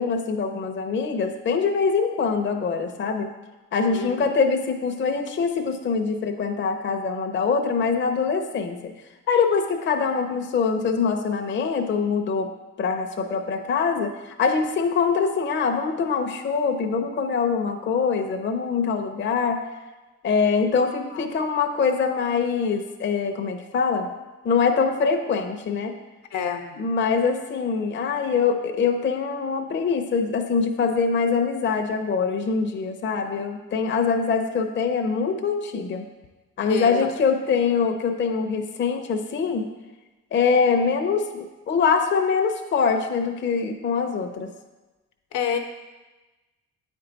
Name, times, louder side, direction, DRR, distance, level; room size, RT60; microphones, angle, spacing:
voice 1, 0.0-3.3 3.7-8.8 9.3-12.5 12.8-19.6 20.2-24.1 24.4-25.9 26.7-36.1 36.6-39.7 40.3-44.5, left 5 dB, 40° left, 4 dB, 0.6 m, -24 dB
voice 2, 26.3-26.8 36.7-36.9 45.3-45.6, left 7 dB, 75° left, 5 dB, 0.8 m, -27 dB
8.4 x 4.5 x 3.9 m, 1.1 s
cardioid pair, 90°, 30 cm